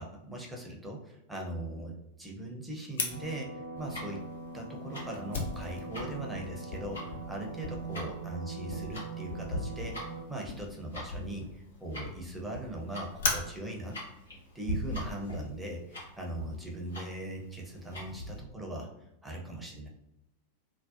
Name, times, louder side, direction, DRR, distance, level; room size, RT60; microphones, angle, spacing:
voice 1, 0.0-4.2 4.5-14.0 14.5-18.9 19.2-19.9, right 1 dB, 5° right, -1 dB, 0.5 m, -40 dB
Fire, 3.0-15.5, left 4 dB, 60° left, 0.4 m, -40 dB
sound 1, 3.1-10.2, right 3 dB, 75° right, 0.8 m, -42 dB
Tick-tock, 3.7-18.4, left 1 dB, 75° left, 0.9 m, -42 dB
2.5 x 2.0 x 2.5 m, 0.84 s
figure-of-eight pair, 90°, 0 cm